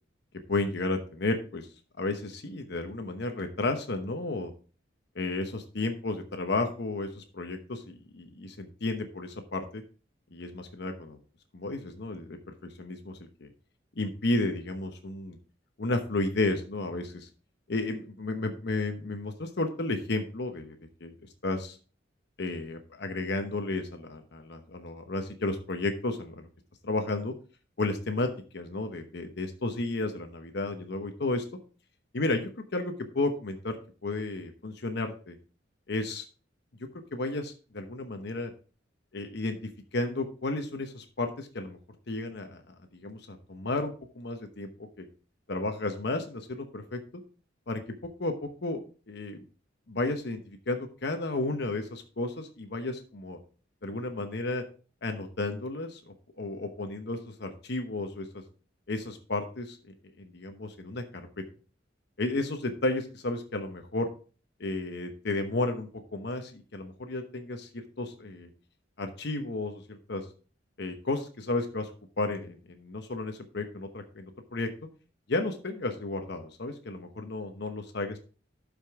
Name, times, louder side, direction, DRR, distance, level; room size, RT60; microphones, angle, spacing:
voice 1, 0.5-1.7 2.0-4.5 5.1-9.8 10.3-11.2 11.5-13.5 14.0-15.4 15.8-17.3 17.7-21.1 21.4-21.8 22.4-26.5 26.8-27.3 27.8-31.4 32.1-35.4 35.9-36.2 37.1-38.5 39.1-41.8 42.1-44.7 45.0-45.1 45.5-47.0 47.7-48.8 49.1-49.4 49.9-53.4 53.8-54.6 55.0-56.0 56.4-58.4 58.9-59.8 60.2-61.3 62.2-64.1 64.6-68.5 69.0-70.3 70.8-71.9 72.2-74.7 75.3-78.2, left 2 dB, 65° left, 6 dB, 1.0 m, -33 dB
12.5 x 5.2 x 3.6 m, 0.38 s
head